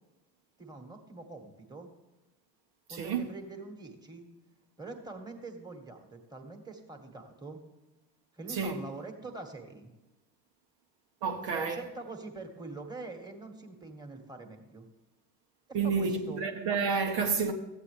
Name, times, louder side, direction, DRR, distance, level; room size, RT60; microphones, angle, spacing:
voice 1, 0.6-1.9 2.9-4.3 4.8-7.6 8.3-9.9 11.5-14.9 15.7-16.4, right 3 dB, 10° right, 1.7 m, -44 dB
voice 2, 2.9-3.3 8.5-8.8 11.2-11.8 15.7-17.5, right 5 dB, 60° right, 1.2 m, -30 dB
14.5 x 8.3 x 3.4 m
hypercardioid pair, 70°, 48 cm